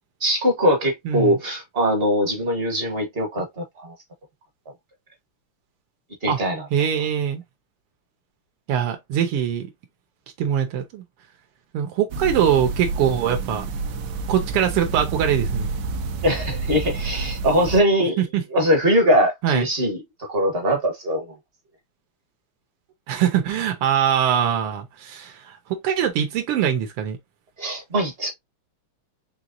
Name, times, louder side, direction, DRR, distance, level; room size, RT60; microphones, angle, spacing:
voice 1, 0.2-3.9 6.2-6.7 16.2-18.2 18.5-20.0 20.3-21.3 27.6-28.3, equal, 45° right, 0.8 m, -21 dB
voice 2, 1.1-1.4 6.3-6.4 6.7-7.4 8.7-9.7 10.4-11.0 11.7-13.7 14.3-15.7 18.2-18.4 19.4-19.7 23.1-27.2, right 9 dB, 90° right, 1.7 m, -22 dB
sound 1, 12.1-17.8, right 4 dB, 70° right, 1.0 m, -29 dB
4.6 x 3.0 x 2.5 m
omnidirectional pair, 2.4 m